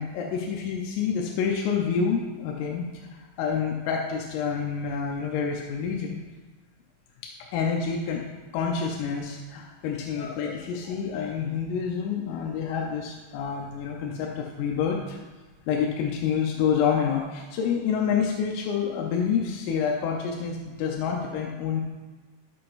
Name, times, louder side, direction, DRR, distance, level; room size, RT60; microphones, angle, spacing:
voice 1, 0.0-6.2 7.2-8.2 8.5-15.2 15.7-21.8, left 6 dB, 85° left, 0 dB, 3.4 m, -28 dB
15.5 x 5.9 x 2.6 m, 1.4 s
omnidirectional pair, 5.8 m